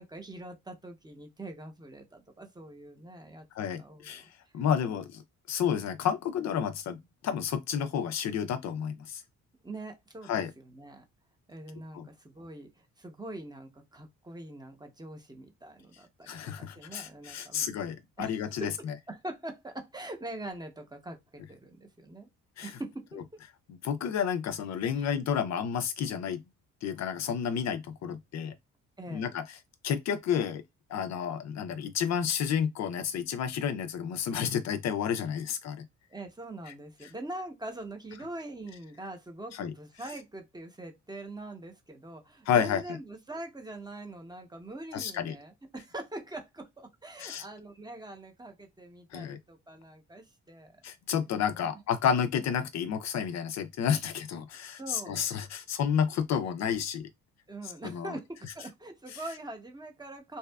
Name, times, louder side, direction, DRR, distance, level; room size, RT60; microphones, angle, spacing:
voice 1, 0.0-4.2 4.5-5.0 9.6-11.0 11.5-17.7 18.2-22.3 22.6-23.2 25.0-25.1 29.0-29.3 36.1-50.8 51.5-51.7 54.7-55.3 57.5-60.4, right 2 dB, 15° right, 0.7 m, -43 dB
voice 2, 3.5-4.3 4.5-5.2 5.5-7.0 7.2-9.2 10.3-10.5 11.9-12.0 16.3-18.7 22.6-22.7 23.7-26.4 26.8-28.5 29.1-29.4 29.8-30.6 30.9-35.8 36.7-36.8 39.6-39.7 42.5-42.8 44.9-45.3 47.2-47.5 49.1-49.4 50.8-57.1 57.9-58.1, left 8 dB, 60° left, 0.4 m, -30 dB
2.7 x 2.3 x 2.2 m
cardioid pair, 90°, 30 cm